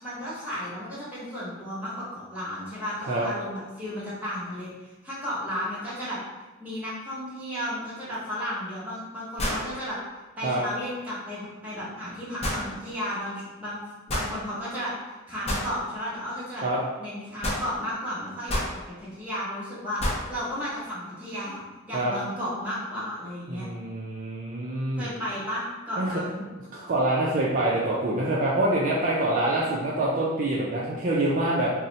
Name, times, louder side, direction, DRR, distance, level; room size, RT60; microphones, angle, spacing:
voice 1, 0.0-6.2 6.6-10.0 10.4-13.8 14.1-16.6 17.0-18.6 19.0-20.0 20.3-21.6 21.9-23.6 25.0-26.4, equal, 5° right, -9 dB, 1.0 m, -33 dB
sound 1, 8.1-8.2 9.4-9.7 12.4-12.6 14.1-14.3 15.5-15.7 17.4-17.7 18.5-18.7 20.0-20.3, equal, 30° left, 0.6 m, -28 dB
voice 2, 23.5-25.1 26.0-26.1 26.7-31.7, right 1 dB, 35° right, -6 dB, 0.4 m, -25 dB
2.7 x 2.0 x 3.9 m, 1.2 s
head